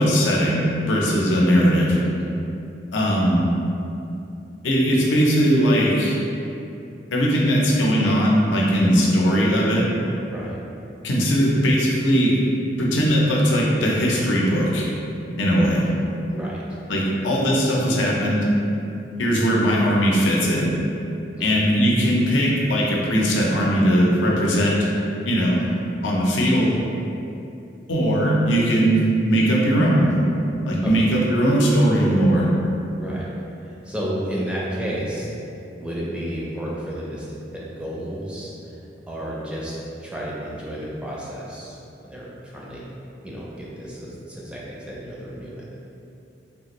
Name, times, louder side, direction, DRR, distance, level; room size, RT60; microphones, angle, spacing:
voice 1, 0.0-2.0 2.9-3.4 4.6-6.2 7.1-9.9 11.0-12.4 12.8-14.9 15.4-15.9 16.9-18.5 19.2-20.8 21.4-24.8 25.3-25.6 26.0-26.8 27.9-30.1 30.7-32.5, equal, 90° left, -4 dB, 0.6 m, -19 dB
voice 2, 10.3-10.6 16.3-17.0 21.4-21.5 30.8-30.9 33.0-33.3 33.6-35.3 35.8-37.3 37.5-38.5 39.1-42.9 43.2-45.8, equal, 5° right, -6 dB, 0.4 m, -32 dB
3.4 x 2.5 x 2.9 m, 2.7 s
head